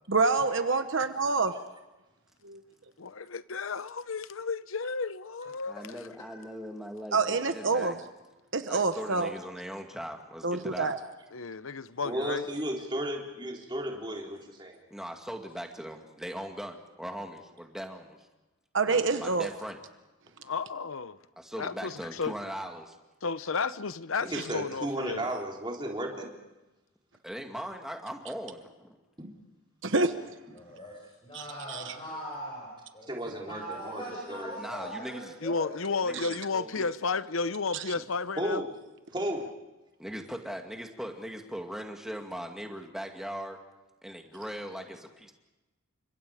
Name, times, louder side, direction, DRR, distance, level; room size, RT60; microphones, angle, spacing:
voice 1, 0.1-1.5 2.4-2.6 7.1-7.9 8.5-9.3 10.4-11.0 18.7-19.5 29.8-30.1 31.3-32.0 36.1-36.3 37.7-37.8, right 3 dB, 65° right, 1.1 m, -27 dB
voice 2, 3.0-5.8 11.3-12.5 20.4-21.2 21.6-22.3 23.2-25.3 35.4-38.6, left 4 dB, 75° left, 0.8 m, -32 dB
voice 3, 5.7-8.0 8.7-10.9 14.9-18.3 18.8-19.8 21.4-23.0 27.2-29.0 34.6-35.4 36.0-36.9 40.0-43.6 44.0-45.3, equal, ahead, 2.2 m, -40 dB
voice 4, 12.0-14.8 24.2-26.3 29.2-29.3 33.1-34.5 38.4-38.7 39.1-39.4, right 1 dB, 20° right, 3.8 m, -34 dB
voice 5, 30.5-33.1 33.5-35.7, equal, 25° left, 5.6 m, -40 dB
30.0 x 25.5 x 5.0 m
head